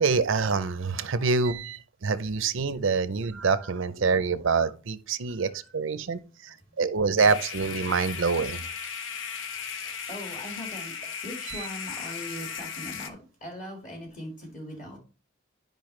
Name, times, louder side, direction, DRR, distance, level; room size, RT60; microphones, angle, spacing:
voice 1, 0.0-8.7 11.5-11.6, right 4 dB, 75° right, 0.6 m, -26 dB
voice 2, 5.2-5.7 6.3-6.8 9.2-10.9 11.2-15.0, left 1 dB, 40° left, 1.8 m, -41 dB
sound 1, 7.2-13.1, left 7 dB, 70° left, 0.8 m, -36 dB
10.5 x 5.3 x 3.2 m
head